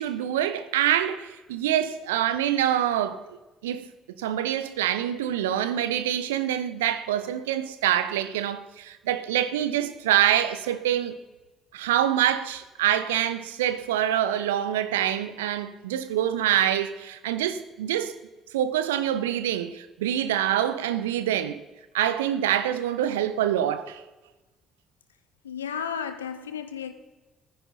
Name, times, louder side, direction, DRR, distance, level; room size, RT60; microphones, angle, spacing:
voice 1, 0.0-3.4 3.6-3.9 4.2-11.2 11.7-18.2 18.5-21.6 21.9-24.0, right 11 dB, 75° right, 0.6 m, -25 dB
voice 2, 25.4-26.9, left 7 dB, 80° left, 0.7 m, -33 dB
17.0 x 10.0 x 4.0 m
figure-of-eight pair, 50°, 0 cm